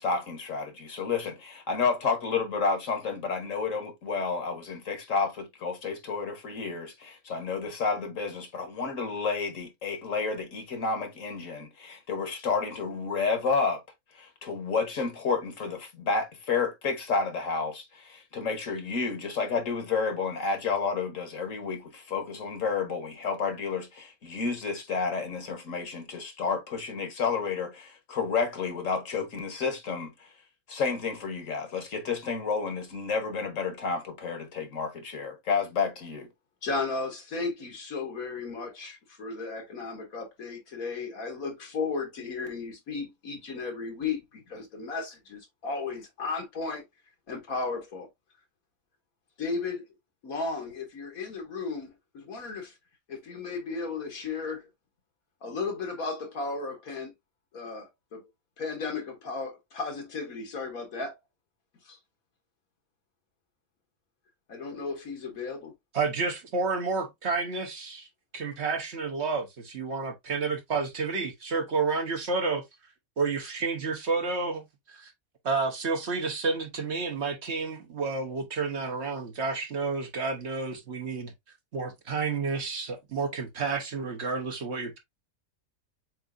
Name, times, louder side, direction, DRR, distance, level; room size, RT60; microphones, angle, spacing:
voice 1, 0.0-13.8 14.1-30.3 30.7-36.3, left 5 dB, 65° left, 1.6 m, -30 dB
voice 2, 36.6-46.8 47.3-48.1 49.4-49.8 50.2-52.7 53.1-54.7 55.4-57.1 57.5-58.2 58.6-61.1 61.8-62.0 64.5-65.7, left 4 dB, 85° left, 2.0 m, -35 dB
voice 3, 65.9-68.1 68.3-72.6 73.2-74.6 74.9-75.1 75.4-81.3 81.7-85.0, right 4 dB, 55° right, 1.2 m, -30 dB
7.3 x 2.7 x 2.5 m
omnidirectional pair, 1.5 m